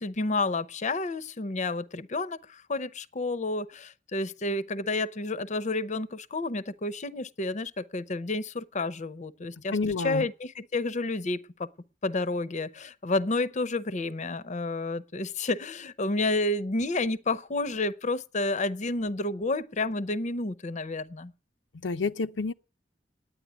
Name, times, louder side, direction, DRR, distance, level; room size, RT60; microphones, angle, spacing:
voice 1, 0.0-11.7 12.0-21.3, left 2 dB, 40° left, 0.7 m, -30 dB
voice 2, 9.7-10.3 21.8-22.5, left 3 dB, 80° left, 0.6 m, -28 dB
9.8 x 9.6 x 10.0 m
head